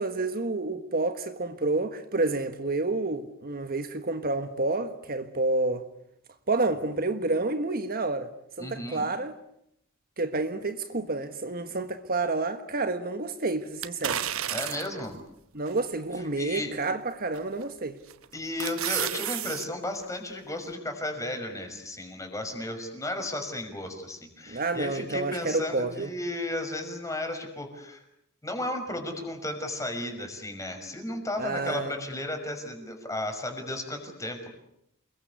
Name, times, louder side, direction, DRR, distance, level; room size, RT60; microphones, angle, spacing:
voice 1, 0.0-5.8 6.5-8.3 8.6-9.3 10.2-14.2 15.5-18.0 24.5-26.1 31.4-32.0, right 2 dB, 45° right, 1.4 m, -29 dB
voice 2, 8.6-9.0 14.5-15.2 16.4-16.8 18.3-28.0 28.4-34.5, left 1 dB, 15° left, 5.9 m, -34 dB
sound 1, 13.8-15.1 15.7-15.8 17.3-17.7 18.1-19.7 20.0-20.1, right 11 dB, 70° right, 1.1 m, -31 dB
29.0 x 22.0 x 8.3 m
head